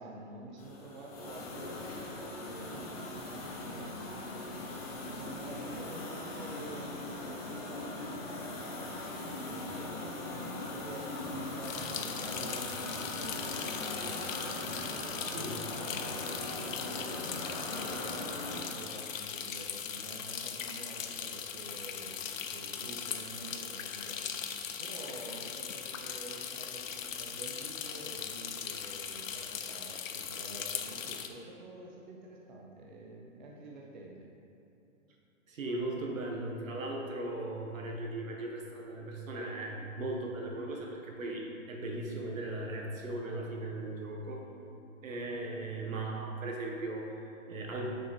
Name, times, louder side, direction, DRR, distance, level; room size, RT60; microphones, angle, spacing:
voice 1, 0.0-4.6 5.0-14.3 14.8-24.3 24.8-34.2, right 2 dB, 35° right, -2 dB, 0.7 m, -48 dB
sound 1, 0.6-18.6, left 2 dB, 30° left, 0.9 m, -40 dB
sound 2, 11.6-31.3, left 7 dB, 70° left, 0.8 m, -39 dB
voice 2, 35.5-44.4 45.0-47.9, right 2 dB, 75° right, -1 dB, 1.7 m, -38 dB
6.6 x 6.4 x 4.4 m, 3.0 s
hypercardioid pair, 170°, 40 cm